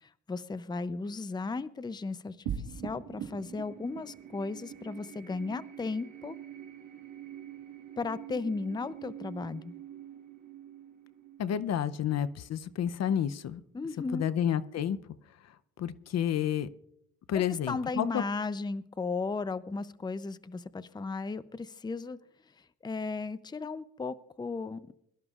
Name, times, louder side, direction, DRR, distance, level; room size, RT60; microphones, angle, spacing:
voice 1, 0.0-2.4 2.7-6.4 8.0-9.7 13.7-14.3 17.3-22.2 22.8-24.9, left 4 dB, 15° left, 15 dB, 0.5 m, -35 dB
sound 1, 2.4-13.1, right 9 dB, 70° right, 1.9 m, -44 dB
voice 2, 11.4-13.6 14.1-15.0 15.8-16.7 17.3-18.2, left 9 dB, 60° left, 15 dB, 0.7 m, -30 dB
22.5 x 12.5 x 2.4 m, 0.74 s
cardioid pair, 90°, 30 cm